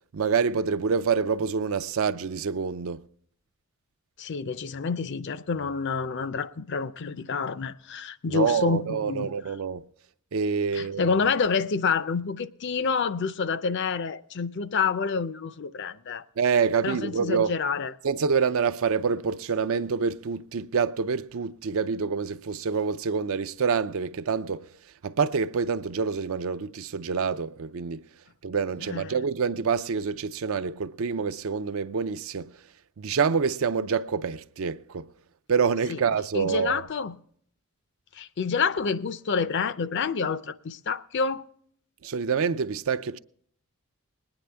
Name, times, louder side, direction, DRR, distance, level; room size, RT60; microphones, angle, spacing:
voice 1, 0.1-3.0 8.3-9.8 10.3-11.2 16.4-17.5 18.0-24.6 25.0-28.0 28.4-32.5 33.0-35.1 35.5-36.8 42.0-43.2, right 5 dB, 65° right, 0.5 m, -26 dB
voice 2, 4.2-9.6 10.7-16.2 16.8-17.9 28.9-29.2 35.9-36.0 36.3-37.2 38.1-41.4, left 5 dB, 55° left, 0.5 m, -28 dB
20.5 x 9.7 x 3.4 m
head